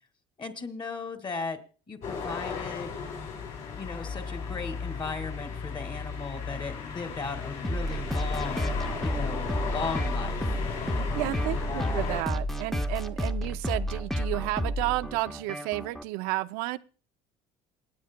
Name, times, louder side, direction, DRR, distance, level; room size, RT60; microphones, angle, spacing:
voice 1, 0.4-1.6 1.9-2.9 3.8-10.4 11.7-12.1, left 4 dB, 35° left, 2.0 m, -36 dB
sound 1, 2.0-12.2, left 6 dB, 65° left, 5.6 m, -35 dB
sound 2, 7.6-16.0, equal, ahead, 0.7 m, -31 dB
voice 2, 11.1-16.8, right 19 dB, 90° right, 0.5 m, -32 dB
27.5 x 9.3 x 2.2 m
cardioid pair, 115°, 15 cm